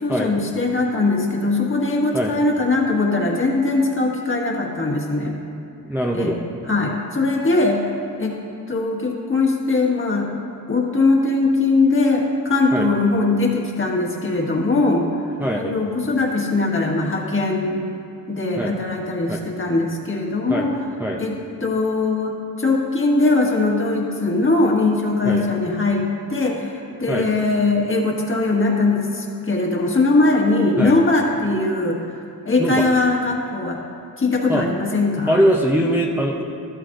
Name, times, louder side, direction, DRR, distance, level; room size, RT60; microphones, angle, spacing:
voice 1, 0.0-5.3 6.1-6.4 6.7-7.8 8.2-8.3 8.7-10.3 10.7-15.2 15.5-17.8 18.3-20.7 21.2-26.0 26.3-32.0 32.4-33.8 34.2-35.4, left 3 dB, 35° left, -1 dB, 1.6 m, -20 dB
voice 2, 5.9-6.4 12.7-12.9 15.4-15.7 18.6-18.7 19.3-19.4 20.5-20.7 21.0-21.2 25.2-25.4 27.1-27.3 30.8-30.9 32.6-32.9 34.5-34.7 35.3-36.4, equal, 5° right, -2 dB, 0.7 m, -21 dB
13.5 x 12.5 x 2.6 m, 2.7 s
wide cardioid pair, 105°, 35 cm